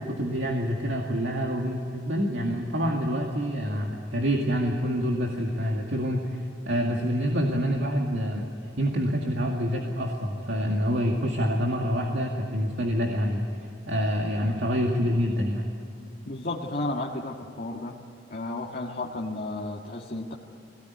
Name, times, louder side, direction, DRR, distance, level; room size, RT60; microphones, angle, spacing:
voice 1, 0.0-8.5 8.8-13.5 13.9-15.7, equal, 90° right, 0 dB, 2.2 m, -27 dB
voice 2, 16.2-18.0 18.3-20.3, left 2 dB, 55° left, -1 dB, 1.8 m, -33 dB
22.0 x 18.0 x 9.7 m, 2.7 s
head